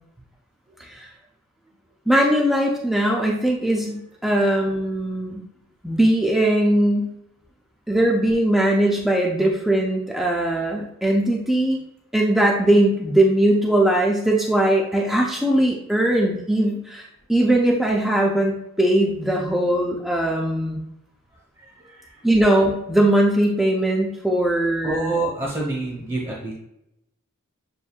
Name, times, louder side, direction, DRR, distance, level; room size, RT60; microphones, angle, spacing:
voice 1, 2.1-5.4 5.8-7.1 7.9-11.8 12.1-20.8 22.2-25.1, right 1 dB, ahead, -2 dB, 0.3 m, -20 dB
voice 2, 21.6-22.2 24.8-26.5, right 2 dB, 25° right, -3 dB, 0.8 m, -28 dB
6.9 x 2.6 x 2.3 m, 0.82 s
head